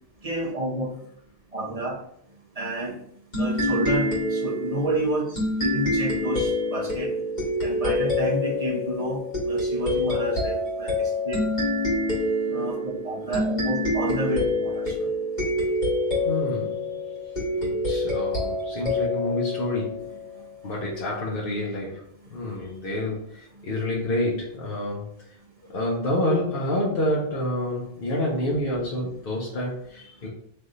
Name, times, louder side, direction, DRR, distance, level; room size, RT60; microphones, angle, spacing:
voice 1, 0.2-0.9 1.5-1.9 2.6-3.0 3.4-7.1 7.6-11.4 12.5-14.9, right 1 dB, 35° right, -3 dB, 1.2 m, -30 dB
sound 1, 3.3-20.5, left 1 dB, 45° left, 2.0 m, -26 dB
voice 2, 16.2-17.2 17.6-20.2 20.6-25.3 25.7-30.3, left 1 dB, 65° left, -4 dB, 1.0 m, -28 dB
3.5 x 3.3 x 3.9 m, 0.67 s
omnidirectional pair, 1.0 m